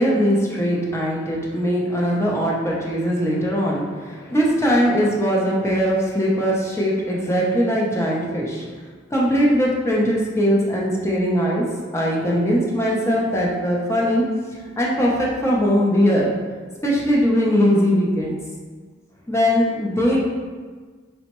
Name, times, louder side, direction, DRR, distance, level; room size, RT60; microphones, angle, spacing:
voice 1, 0.0-8.6 9.1-14.3 14.8-16.3 16.8-18.4 19.3-20.2, equal, 15° left, -4 dB, 0.5 m, -20 dB
4.3 x 2.0 x 2.9 m, 1.5 s
head